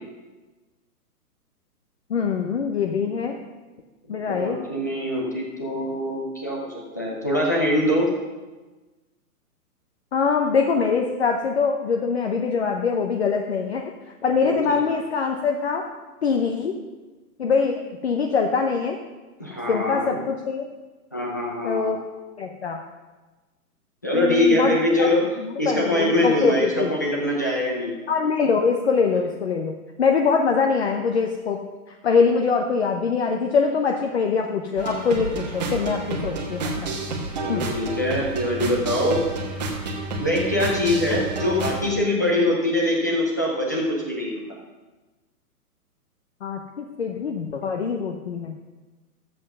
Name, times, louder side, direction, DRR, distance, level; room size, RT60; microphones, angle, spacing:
voice 1, 2.1-3.4 4.1-4.6 10.1-13.8 14.2-15.8 16.2-16.7 17.4-19.0 19.7-20.7 21.6-22.1 22.4-22.8 24.1-25.1 25.4-26.9 28.1-31.6 31.9-36.9 37.5-37.6 46.4-48.6, left 5 dB, 45° left, 3 dB, 0.9 m, -23 dB
voice 2, 4.1-6.6 7.0-8.1 14.4-14.7 19.4-20.2 21.1-21.9 24.0-25.2 25.6-27.9 37.4-39.2 40.2-44.4, left 1 dB, 10° left, -3 dB, 0.6 m, -23 dB
sound 1, 34.8-41.8, right 2 dB, 25° right, 1.3 m, -30 dB
13.0 x 7.9 x 5.4 m, 1.2 s
hypercardioid pair, 180°, 47 cm